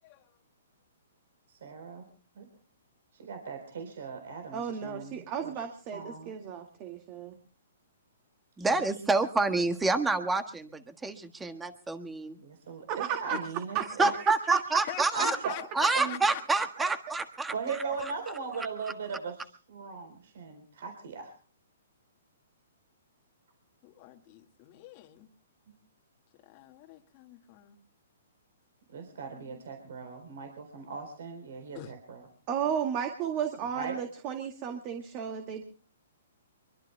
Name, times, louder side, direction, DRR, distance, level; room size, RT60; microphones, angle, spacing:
voice 1, 1.5-2.0 2.4-2.5 3.1-5.5 5.9-6.3 8.7-8.8 12.4-14.1 15.1-15.6 15.9-16.2 17.5-21.3 28.9-32.2 33.7-34.0, right 5 dB, 70° right, 6 dB, 4.0 m, -39 dB
voice 2, 4.5-7.3 12.9-13.4 13.7-14.6 15.0-15.1 32.5-35.6, right 8 dB, 35° right, 5 dB, 1.9 m, -33 dB
voice 3, 8.6-12.4 14.0-15.4 15.7-17.5, right 3 dB, 10° right, 8 dB, 1.5 m, -28 dB
voice 4, 14.9-16.4 16.8-16.9 23.8-25.3 26.4-27.8 29.3-29.6 31.7-31.9, left 16 dB, 35° left, 3 dB, 1.9 m, -44 dB
24.5 x 23.0 x 2.2 m, 0.37 s
hypercardioid pair, 145°, 0 cm